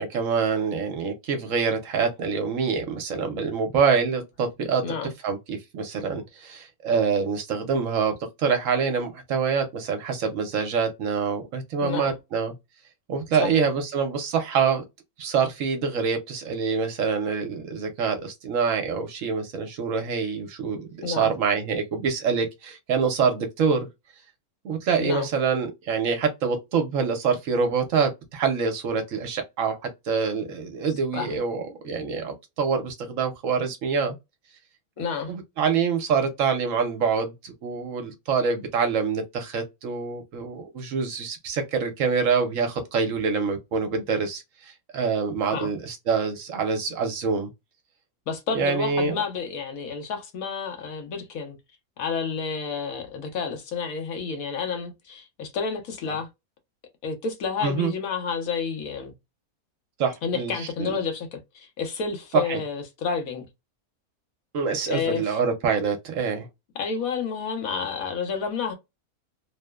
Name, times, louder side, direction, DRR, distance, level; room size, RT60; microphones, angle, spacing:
voice 1, 0.0-4.8 5.2-12.5 13.1-14.8 15.2-23.9 24.6-34.2 35.3-47.5 48.5-49.2 57.6-57.9 60.0-61.0 62.3-62.6 64.5-66.5, right 5 dB, 65° right, 0.9 m, -26 dB
voice 2, 11.8-12.1 13.4-13.7 21.0-21.3 25.0-25.3 31.1-31.3 35.0-35.3 45.5-45.7 48.3-51.6 52.0-56.3 57.0-59.1 60.2-63.5 64.9-65.4 66.8-68.7, left 5 dB, 70° left, 1.1 m, -30 dB
2.9 x 2.0 x 2.2 m
omnidirectional pair, 1.6 m